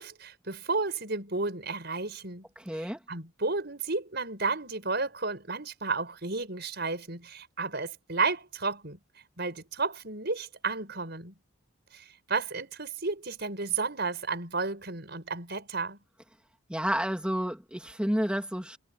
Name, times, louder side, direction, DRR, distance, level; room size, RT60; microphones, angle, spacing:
voice 1, 0.0-2.5 2.7-9.0 9.4-11.3 11.9-16.0, right 4 dB, 50° right, 6.0 m, -32 dB
voice 2, 2.6-3.0 16.7-18.8, equal, 5° right, 3.1 m, -30 dB
head